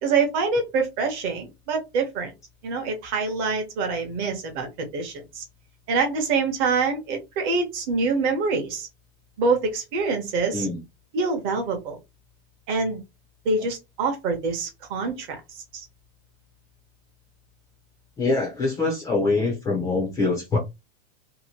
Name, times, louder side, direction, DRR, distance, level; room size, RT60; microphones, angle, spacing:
voice 1, 0.0-2.3 2.6-5.4 5.9-8.9 9.4-10.7 11.1-12.0 12.7-13.0 13.4-15.4 15.7-15.9, right 4 dB, 35° right, 0.8 m, -25 dB
voice 2, 18.2-20.6, left 3 dB, 10° left, 0.5 m, -24 dB
2.8 x 2.5 x 2.8 m
supercardioid pair, 160°, 30 cm